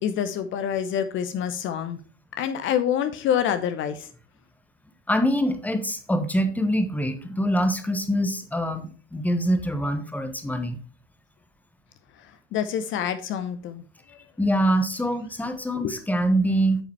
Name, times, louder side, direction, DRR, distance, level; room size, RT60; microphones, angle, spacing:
voice 1, 0.0-2.0 2.4-4.1 12.2-13.8 15.8-16.0, left 9 dB, 30° left, 10 dB, 0.8 m, -27 dB
voice 2, 5.1-10.8 14.4-16.8, equal, 5° left, 9 dB, 1.1 m, -24 dB
8.9 x 7.2 x 3.2 m, 0.39 s
figure-of-eight pair, 85°, 37 cm